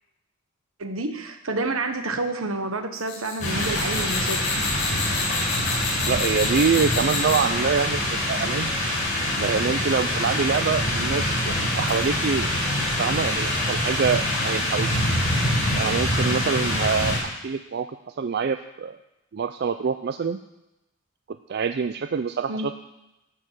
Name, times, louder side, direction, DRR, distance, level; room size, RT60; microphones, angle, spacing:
voice 1, 0.8-4.5 22.5-22.7, right 2 dB, 75° right, 7 dB, 1.2 m, -29 dB
sound 1, 2.9-7.6, left 4 dB, 75° left, 4.7 m, -30 dB
sound 2, 3.4-17.2, left 1 dB, 35° left, 5.4 m, -25 dB
voice 2, 6.1-8.7 9.4-12.5 13.0-14.9 15.7-17.9 18.2-19.0 19.3-20.4 21.5-22.8, right 5 dB, 50° right, 9 dB, 0.4 m, -25 dB
12.0 x 6.8 x 7.4 m, 0.93 s
head